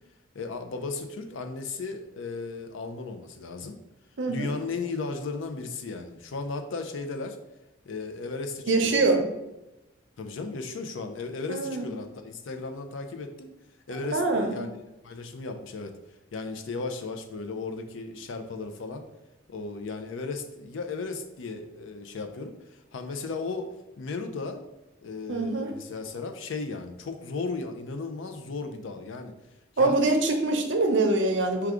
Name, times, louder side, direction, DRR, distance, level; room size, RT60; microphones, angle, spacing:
voice 1, 0.3-3.8 4.3-7.4 7.9-9.0 10.2-13.5 13.9-14.7 15.0-15.9 16.3-19.0 19.5-23.7 24.0-24.6 25.0-29.3 29.8-30.0, left 3 dB, 85° left, 6 dB, 0.5 m, -35 dB
voice 2, 4.2-4.5 8.7-9.2 11.5-11.9 13.9-14.5 25.3-25.7 29.8-31.7, right 2 dB, 75° right, 4 dB, 0.6 m, -24 dB
4.7 x 2.3 x 3.6 m, 0.95 s
head